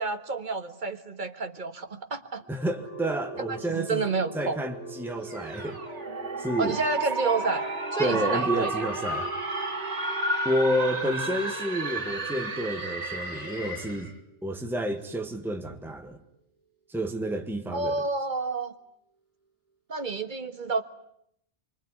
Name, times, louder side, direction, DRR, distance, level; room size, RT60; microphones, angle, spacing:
voice 1, 0.0-2.4 3.5-4.6 6.6-7.6 7.9-8.7 17.7-18.7 19.9-20.8, right 4 dB, 45° right, 1.7 m, -29 dB
sound 1, 2.4-16.3, right 2 dB, 80° left, 6.2 m, -43 dB
voice 2, 2.5-4.0 4.3-5.8 6.4-6.8 8.0-9.3 10.4-14.1 14.4-16.2 16.9-18.0, right 1 dB, ahead, 1.6 m, -30 dB
sound 2, 5.2-14.1, right 2 dB, 75° right, 3.5 m, -32 dB
25.0 x 24.5 x 9.7 m
omnidirectional pair, 1.2 m